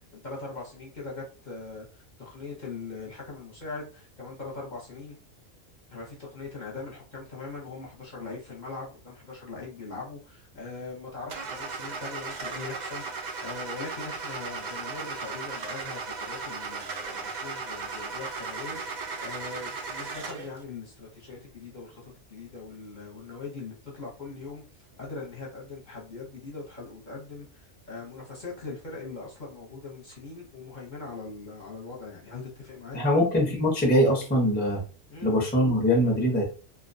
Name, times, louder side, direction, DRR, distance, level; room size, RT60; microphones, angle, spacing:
voice 1, 0.1-5.2 5.9-24.6 25.0-33.0 35.1-35.3, left 3 dB, 45° left, -4 dB, 0.7 m, -41 dB
Car / Engine starting, 11.3-20.6, right 4 dB, 80° right, 0.4 m, -36 dB
voice 2, 32.9-34.8 35.2-36.5, equal, 10° left, -2 dB, 0.5 m, -22 dB
2.4 x 2.1 x 2.5 m, 0.37 s
omnidirectional pair, 1.3 m